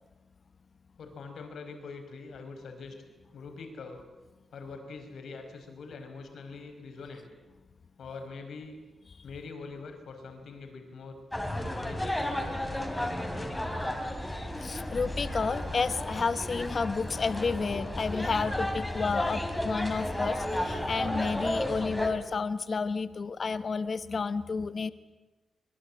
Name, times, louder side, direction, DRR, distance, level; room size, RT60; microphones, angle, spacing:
voice 1, 1.0-3.0 3.3-4.1 4.5-7.3 8.0-8.8 9.2-11.2 11.8-13.4, left 4 dB, 80° left, 5 dB, 5.3 m, -44 dB
sound 1, 11.3-22.1, left 1 dB, 10° left, 2.9 m, -33 dB
voice 2, 14.6-24.9, left 4 dB, 40° left, 13 dB, 0.9 m, -31 dB
25.0 x 22.0 x 8.6 m, 1.1 s
wide cardioid pair, 170°, 0 cm